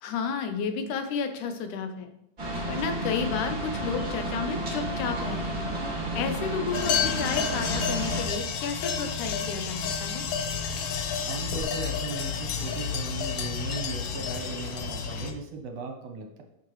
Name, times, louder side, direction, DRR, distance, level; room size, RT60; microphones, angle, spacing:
voice 1, 0.0-2.1 2.7-5.7 6.1-10.3, left 6 dB, 90° left, 7 dB, 2.3 m, -32 dB
sound 1, 2.4-8.2, right 1 dB, 35° right, 0.9 m, -31 dB
sound 2, 6.7-15.3, left 6 dB, 75° left, 1.5 m, -30 dB
voice 2, 11.2-16.4, right 4 dB, 70° right, 4 dB, 1.8 m, -37 dB
9.6 x 6.6 x 3.1 m, 0.82 s
omnidirectional pair, 3.4 m